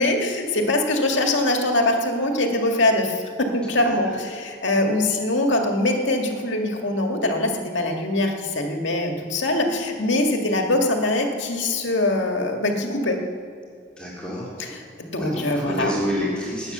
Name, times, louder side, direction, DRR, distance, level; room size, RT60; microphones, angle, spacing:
voice 1, 0.0-13.2 14.6-14.7 15.0-15.9, left 2 dB, 85° left, 2 dB, 2.0 m, -23 dB
voice 2, 14.0-14.5 15.2-16.7, left 1 dB, 5° left, -7 dB, 3.4 m, -28 dB
20.5 x 9.1 x 6.8 m, 2.3 s
head